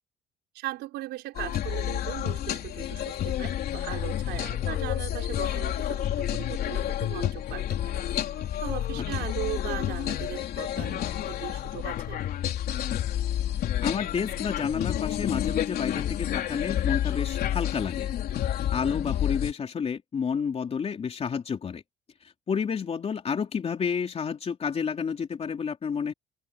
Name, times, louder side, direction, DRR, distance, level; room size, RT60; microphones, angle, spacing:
voice 1, 0.5-12.2, right 17 dB, 85° right, 5.2 m, -38 dB
sound 1, 1.3-19.5, left 11 dB, 65° left, 3.5 m, -30 dB
voice 2, 13.8-18.1 18.7-21.8 22.5-26.1, left 6 dB, 35° left, 3.4 m, -30 dB
cardioid pair, 110°, 17 cm